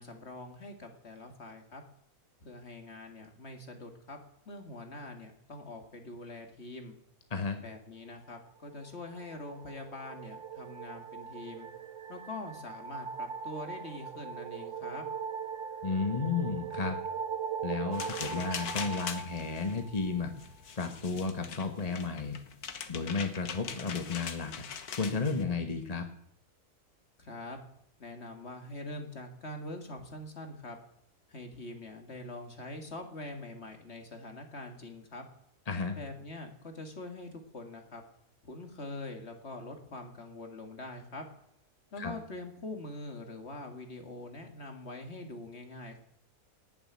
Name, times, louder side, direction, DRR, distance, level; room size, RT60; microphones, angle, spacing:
voice 1, 0.0-1.8 2.4-4.2 4.5-6.9 7.6-11.7 12.1-15.0 27.2-27.6 28.0-30.8 31.3-35.3 36.0-38.0 38.4-41.2 41.9-46.0, left 2 dB, 45° left, 5 dB, 2.3 m, -44 dB
sound 1, 8.8-20.2, right 6 dB, 55° right, 1.4 m, -40 dB
voice 2, 15.8-17.0 17.6-20.3 20.8-22.4 22.9-24.5 25.0-26.0 35.7-36.0 42.0-42.1, left 4 dB, 25° left, 6 dB, 1.2 m, -33 dB
sound 2, 17.9-25.4, left 7 dB, 80° left, 1.7 m, -42 dB
18.5 x 7.5 x 9.7 m, 0.75 s
omnidirectional pair, 1.6 m